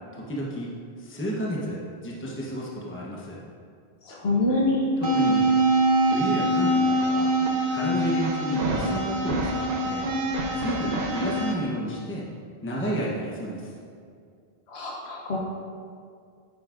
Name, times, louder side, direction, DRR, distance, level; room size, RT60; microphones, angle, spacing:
voice 1, 0.1-3.4 5.0-5.5 6.0-7.3 7.7-10.1 10.5-12.3 12.6-13.7, equal, 10° left, -4 dB, 0.9 m, -31 dB
voice 2, 4.0-4.8 14.7-15.4, left 2 dB, 75° left, -2 dB, 1.1 m, -25 dB
sound 1, 5.0-11.5, right 1 dB, 55° right, 1.0 m, -24 dB
9.5 x 9.1 x 2.5 m, 2.2 s
omnidirectional pair, 1.1 m